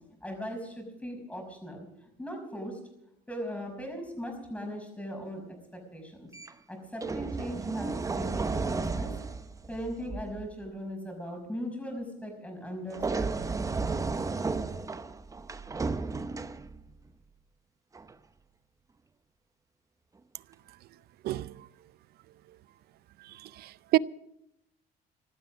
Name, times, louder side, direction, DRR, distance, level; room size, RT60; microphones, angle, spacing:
voice 1, 0.2-2.8 3.3-6.3 6.7-9.1 9.7-13.5, equal, 10° left, 5.5 m, -39 dB
sound 1, 6.3-6.5 7.0-10.5 12.9-16.9 17.9-18.1, right 4 dB, 20° right, 0.8 m, -33 dB
voice 2, 21.2-21.7 23.2-24.0, right 17 dB, 70° right, 0.5 m, -29 dB
16.0 x 12.5 x 6.3 m
cardioid pair, 110°, 17 cm